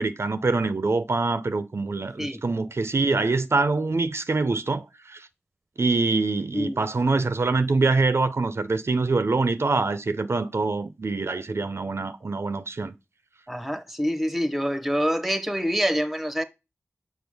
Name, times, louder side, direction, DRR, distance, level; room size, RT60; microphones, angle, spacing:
voice 1, 0.0-5.3 5.8-12.9, right 3 dB, 60° right, 0.5 m, -25 dB
voice 2, 13.5-16.4, equal, ahead, 0.7 m, -26 dB
6.1 x 4.6 x 3.4 m
wide cardioid pair, 50°, 5 cm